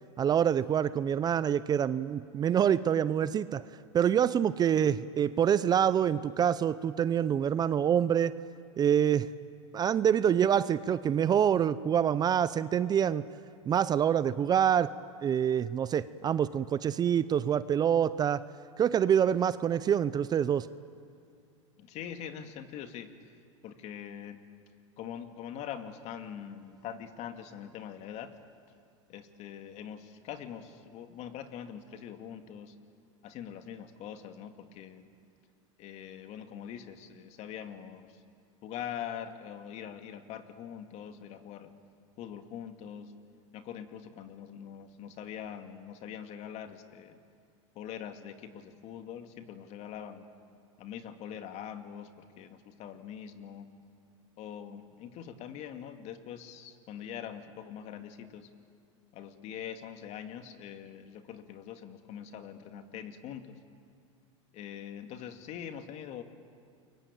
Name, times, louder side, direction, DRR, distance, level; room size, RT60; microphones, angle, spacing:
voice 1, 0.2-3.6 3.9-8.4 8.8-9.3 9.7-13.2 13.7-14.9 15.2-18.4 18.8-20.7, right 9 dB, 25° right, 16 dB, 0.6 m, -26 dB
voice 2, 21.8-23.1 23.6-24.4 25.0-28.3 29.1-32.8 33.2-35.1 35.8-38.2 38.6-41.7 42.2-43.1 43.5-47.2 47.7-50.3 50.8-53.7 54.4-58.5 59.1-63.6 64.5-66.2, left 9 dB, 45° left, 7 dB, 2.3 m, -43 dB
29.0 x 23.0 x 8.9 m, 2.3 s
supercardioid pair, 120°, 16 cm